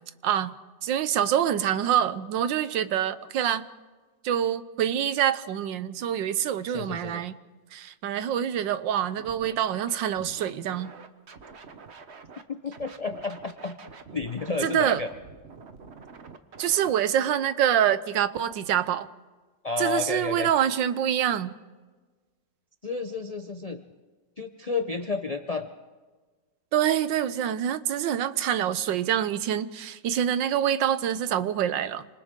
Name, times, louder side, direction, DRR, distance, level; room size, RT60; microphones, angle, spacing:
voice 1, 0.2-0.5 0.8-3.7 4.2-7.3 7.7-10.9 14.6-15.0 16.6-19.1 19.8-21.5 26.7-32.1, right 10 dB, 85° right, 13 dB, 1.5 m, -26 dB
voice 2, 6.7-7.2 12.5-13.8 14.1-15.1 19.6-20.5 22.8-23.8 24.4-25.7, left 4 dB, 60° left, 6 dB, 0.4 m, -31 dB
Scratching (performance technique), 9.2-9.5 9.9-12.4 12.7-16.9, right 5 dB, 40° right, 1.2 m, -47 dB
28.0 x 26.0 x 3.7 m, 1.3 s
omnidirectional pair, 1.9 m